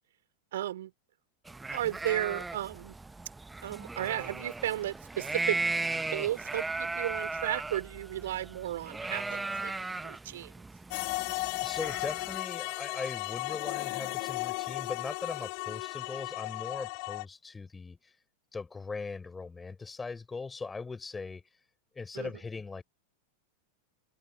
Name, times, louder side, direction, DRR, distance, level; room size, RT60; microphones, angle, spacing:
voice 1, 0.5-0.9 1.7-2.9 3.6-5.6 6.1-9.8 10.0-10.5 22.1-22.3, right 13 dB, 60° right, 3.3 m, -34 dB
sound 1, 1.5-12.4, right 3 dB, 10° right, 0.9 m, -37 dB
sound 2, 10.9-17.2, left 40 dB or more, 45° left, 2.6 m, -35 dB
voice 2, 11.3-18.1 18.5-21.4 22.0-22.8, left 4 dB, 10° left, 3.6 m, -40 dB
open air
figure-of-eight pair, 90°, 0 cm